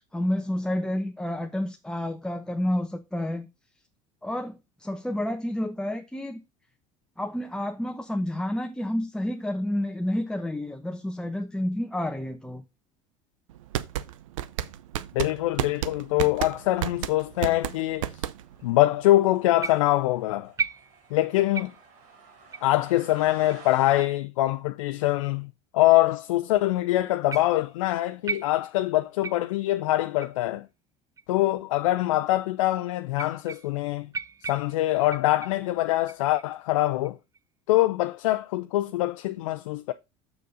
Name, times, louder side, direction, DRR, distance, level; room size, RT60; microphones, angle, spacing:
voice 1, 0.1-3.5 4.2-6.4 7.2-12.6, left 1 dB, 5° left, 1.0 m, -30 dB
sound 1, 13.5-18.7, right 12 dB, 85° right, 0.6 m, -31 dB
voice 2, 15.1-18.1 18.6-20.5 21.1-21.7 22.6-30.7 31.3-34.1 34.4-37.2 37.7-39.9, left 16 dB, 85° left, 0.5 m, -24 dB
sound 2, 15.3-24.0, right 5 dB, 65° right, 4.6 m, -53 dB
sound 3, 19.6-20.1 20.6-21.2 21.5-21.9 22.5-22.7 23.5-23.6 24.5-24.6 25.4-25.5 27.3-27.7 28.3-28.9 29.2-29.6 30.2-30.4 31.2-31.3 32.1-32.2 33.1-33.9 34.1-35.7 36.1-36.5 37.0-37.4, right 5 dB, 20° right, 0.5 m, -36 dB
6.9 x 6.7 x 3.9 m
hypercardioid pair, 85°, 16 cm